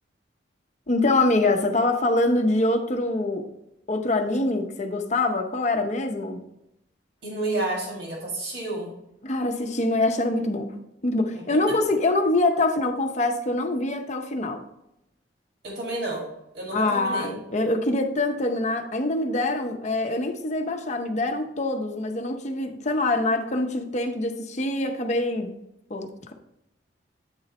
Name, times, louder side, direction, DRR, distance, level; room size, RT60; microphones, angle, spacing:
voice 1, 0.9-3.5 3.9-6.4 9.2-14.6 16.7-25.5 25.9-26.3, left 2 dB, 40° left, 4 dB, 0.7 m, -24 dB
voice 2, 7.2-9.0 11.3-11.8 15.6-16.2 16.5-17.3, right 2 dB, 60° right, -3 dB, 2.0 m, -30 dB
8.9 x 3.9 x 4.1 m, 0.85 s
head